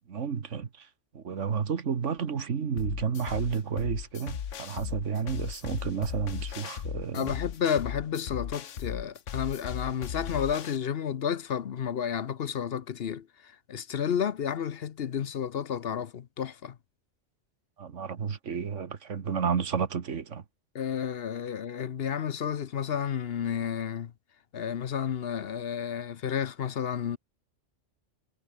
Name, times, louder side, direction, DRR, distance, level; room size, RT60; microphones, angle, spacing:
voice 1, 0.1-0.9 1.1-7.3 17.8-20.4, right 6 dB, 80° right, 1.7 m, -31 dB
sound 1, 2.8-10.8, left 8 dB, 90° left, 1.4 m, -37 dB
voice 2, 7.1-16.8 20.7-24.1 24.5-27.2, left 8 dB, 60° left, 1.0 m, -31 dB
omnidirectional pair, 1.2 m